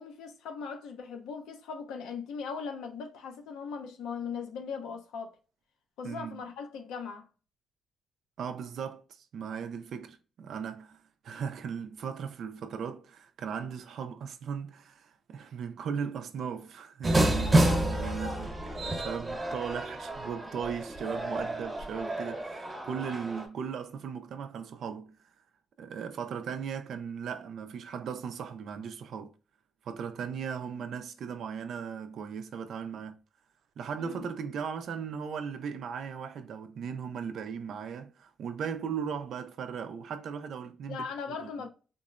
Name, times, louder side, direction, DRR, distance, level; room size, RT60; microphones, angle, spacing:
voice 1, 0.0-5.3 6.0-7.3 34.0-34.3 40.9-41.7, left 5 dB, 90° left, 0.7 m, -39 dB
voice 2, 6.0-6.4 8.4-25.1 25.8-29.3 29.8-33.2 33.8-41.4, right 7 dB, 65° right, 0.4 m, -37 dB
sound 1, 17.0-23.5, right 1 dB, 25° right, 0.9 m, -29 dB
3.6 x 2.0 x 2.4 m
cardioid pair, 90°, 0 cm